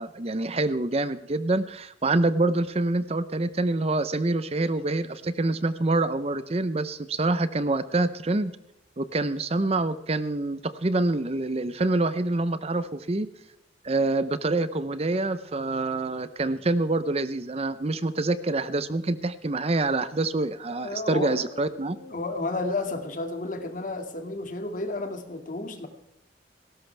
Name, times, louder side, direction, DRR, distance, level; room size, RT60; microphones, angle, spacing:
voice 1, 0.0-8.5 9.0-13.3 13.8-22.0, right 2 dB, 35° right, 13 dB, 0.7 m, -26 dB
voice 2, 20.7-25.9, left 2 dB, 45° left, 6 dB, 2.2 m, -32 dB
19.0 x 17.0 x 3.4 m, 0.80 s
head